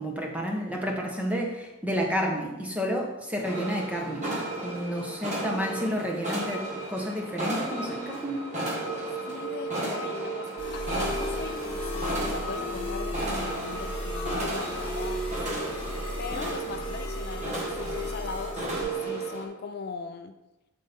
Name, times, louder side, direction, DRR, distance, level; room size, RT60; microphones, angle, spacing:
voice 1, 0.0-4.3 4.6-8.5, equal, 5° right, 0 dB, 1.0 m, -30 dB
sound 1, 3.4-19.4, right 2 dB, 30° right, 1.6 m, -34 dB
voice 2, 9.3-15.7 16.2-20.4, left 4 dB, 45° left, 7 dB, 0.4 m, -39 dB
sound 2, 10.6-18.8, left 1 dB, 25° left, 1.4 m, -35 dB
12.0 x 4.2 x 3.6 m, 1.0 s
head